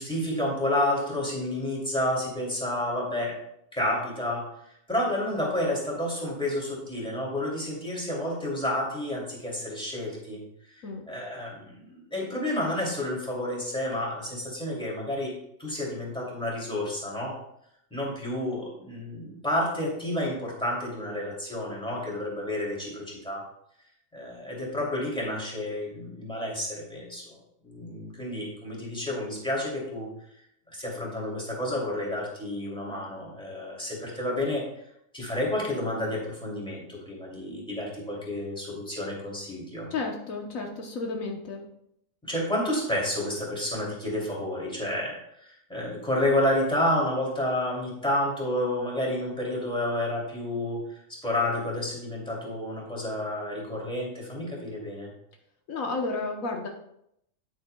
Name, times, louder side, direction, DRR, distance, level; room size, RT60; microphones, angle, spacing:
voice 1, 0.0-3.3 3.7-4.4 4.9-10.4 10.7-15.3 15.6-17.3 17.9-23.4 24.1-27.4 27.6-30.1 30.7-34.6 35.1-39.9 42.2-55.1, left 1 dB, 5° left, -4 dB, 2.7 m, -30 dB
voice 2, 39.9-41.6 55.7-56.7, left 3 dB, 75° left, 2 dB, 1.4 m, -32 dB
9.5 x 8.9 x 2.2 m, 0.76 s
omnidirectional pair, 1.4 m